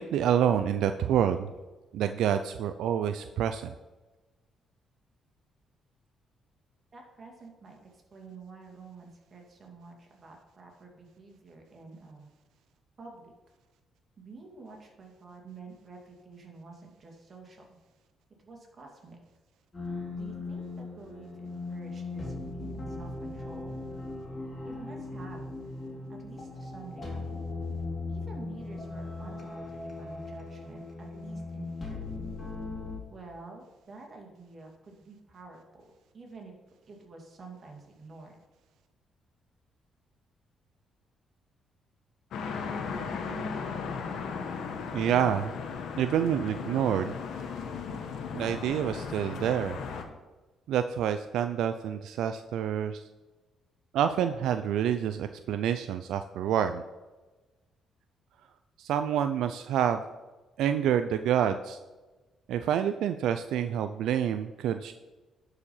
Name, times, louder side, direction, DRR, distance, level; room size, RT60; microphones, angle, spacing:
voice 1, 0.0-1.5 1.9-3.7 44.9-45.5 46.0-47.1 48.3-49.8 50.7-53.1 53.9-56.8 58.8-60.0 60.6-61.8 62.5-64.9, right 9 dB, 80° right, 9 dB, 0.4 m, -27 dB
voice 2, 6.9-12.3 13.0-13.3 14.2-17.6 18.4-19.2 20.1-23.8 24.6-25.6 26.1-27.4 28.1-32.2 33.1-35.9 36.1-36.5 36.9-38.4, right 3 dB, 40° right, 1 dB, 2.5 m, -49 dB
sound 1, 19.7-33.0, left 3 dB, 30° left, 2.6 m, -38 dB
sound 2, 42.3-50.0, left 5 dB, 75° left, 1.2 m, -36 dB
11.0 x 5.0 x 5.6 m, 1.2 s
cardioid pair, 90°, 0 cm